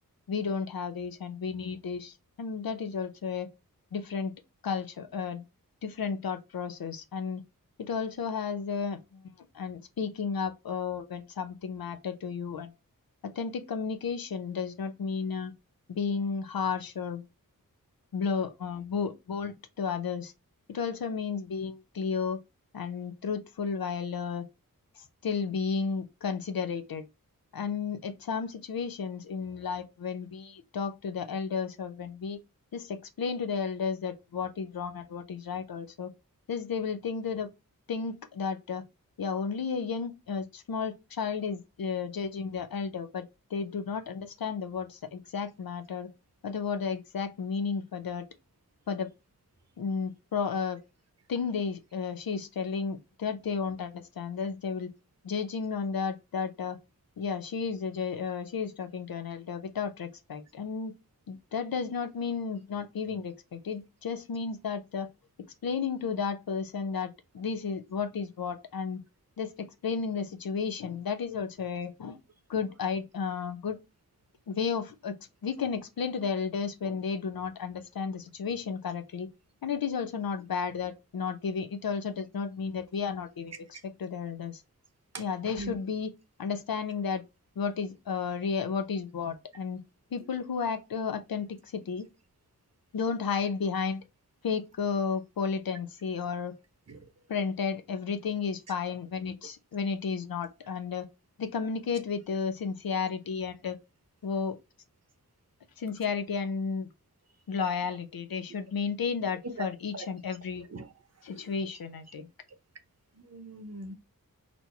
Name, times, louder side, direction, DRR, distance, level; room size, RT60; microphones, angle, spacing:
voice 1, 0.3-3.5 3.9-4.3 4.6-5.4 5.8-7.4 7.8-12.7 13.2-15.5 15.9-17.3 18.1-20.3 20.7-22.4 22.7-24.4 24.9-27.0 27.5-32.4 32.7-36.1 36.5-37.5 37.9-38.8 39.2-43.2 43.5-46.1 46.4-48.3 48.9-49.1 49.8-50.8 51.3-54.9 55.2-56.8 57.2-60.9 61.3-65.1 65.6-69.0 69.4-72.2 72.5-73.8 74.5-75.2 75.4-79.3 79.6-84.6 85.2-86.1 86.4-87.2 87.6-89.8 90.1-92.1 92.9-94.0 94.4-96.5 97.3-101.1 101.4-103.8 104.2-104.6 105.8-106.9 107.5-110.6 111.2-112.3, left 5 dB, 80° left, 0.7 m, -33 dB
voice 2, 113.2-113.9, right 2 dB, 45° right, 1.0 m, -40 dB
4.3 x 2.8 x 4.4 m
wide cardioid pair, 85°, 35 cm